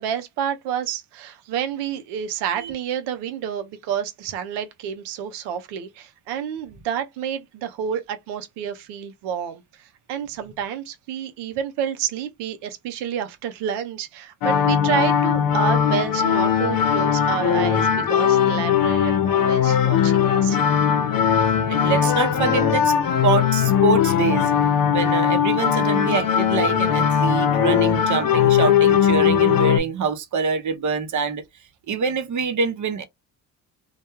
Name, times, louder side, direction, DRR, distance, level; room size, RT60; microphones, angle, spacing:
voice 1, 0.0-20.6, right 8 dB, 85° right, 0.6 m, -29 dB
sound 1, 14.4-29.8, left 8 dB, 55° left, 0.7 m, -19 dB
voice 2, 20.4-20.8 21.2-22.9 23.2-24.5 24.9-31.4 31.9-33.0, right 5 dB, 45° right, 0.7 m, -25 dB
2.2 x 2.1 x 3.0 m
supercardioid pair, 65°, 40 cm